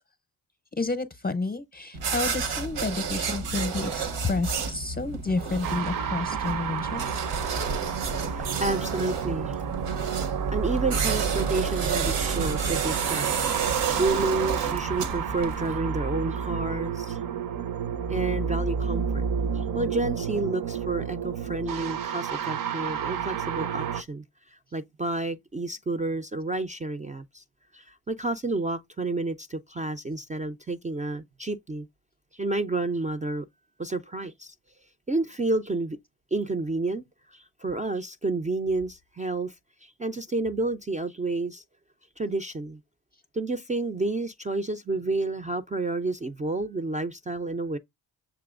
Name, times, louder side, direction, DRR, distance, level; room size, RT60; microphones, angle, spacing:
voice 1, 0.8-7.2, left 3 dB, 20° left, 0.7 m, -30 dB
sound 1, 1.9-15.8, right 5 dB, 80° right, 1.1 m, -31 dB
sound 2, 5.6-24.0, right 7 dB, 50° right, 0.7 m, -30 dB
voice 2, 7.5-9.6 10.5-17.2 18.1-19.3 19.5-27.4 27.7-31.9 32.3-33.5 33.8-34.5 35.1-36.0 36.3-37.0 37.3-39.5 39.8-41.6 42.2-42.8 43.3-47.8, right 2 dB, 20° right, 0.4 m, -30 dB
6.8 x 2.9 x 2.4 m
cardioid pair, 70°, 42 cm